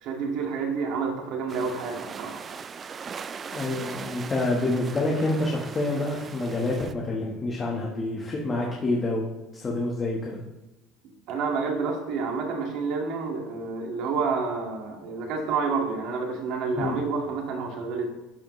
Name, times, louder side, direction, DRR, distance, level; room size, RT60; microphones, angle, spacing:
voice 1, 0.0-2.4 11.0-18.1, right 4 dB, 65° right, 1 dB, 1.9 m, -29 dB
sound 1, 1.5-6.9, right 6 dB, 30° right, 0.4 m, -39 dB
voice 2, 3.5-10.4 16.8-16.9, left 2 dB, 25° left, -2 dB, 1.3 m, -27 dB
12.0 x 5.0 x 3.2 m, 1.0 s
supercardioid pair, 115°, 0 cm